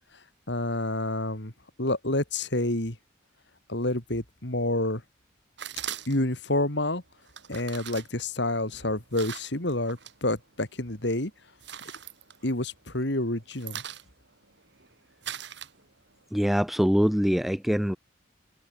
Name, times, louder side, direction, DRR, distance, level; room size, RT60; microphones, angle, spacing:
voice 1, 0.5-1.5 1.8-3.0 3.7-5.0 6.1-7.0 7.5-11.3 12.4-13.8, left 1 dB, 60° left, 3.5 m, -28 dB
sound 1, 5.6-6.4 7.3-10.2 10.5-11.1 11.4-12.9 13.2-16.2, right 9 dB, 60° right, 3.8 m, -41 dB
voice 2, 16.3-18.0, equal, ahead, 0.3 m, -23 dB
head